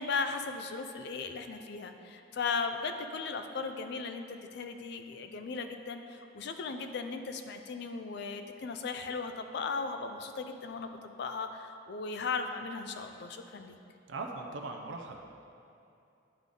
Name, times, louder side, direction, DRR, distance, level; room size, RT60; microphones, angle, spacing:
voice 1, 0.0-13.8, left 4 dB, 60° left, 7 dB, 0.4 m, -37 dB
voice 2, 14.1-15.2, right 3 dB, 75° right, 3 dB, 0.5 m, -39 dB
9.8 x 3.7 x 3.7 m, 2.6 s
head